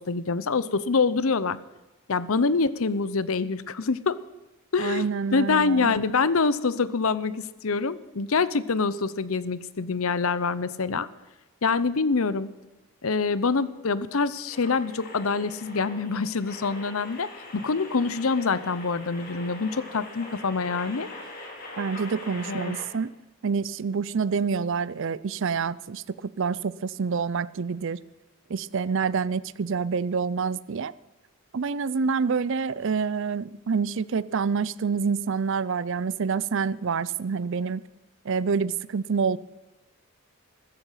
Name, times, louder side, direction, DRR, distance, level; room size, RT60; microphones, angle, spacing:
voice 1, 0.0-1.6 2.1-4.2 4.7-11.1 11.6-12.5 13.0-21.1 22.5-22.8, left 4 dB, 70° left, 0.7 m, -25 dB
voice 2, 4.8-6.0 21.8-23.2 23.4-28.0 28.5-30.9 31.5-37.8 38.2-39.4, right 5 dB, 55° right, 0.5 m, -27 dB
sound 1, 14.5-22.8, left 2 dB, 40° left, 3.8 m, -42 dB
15.0 x 14.0 x 5.6 m
head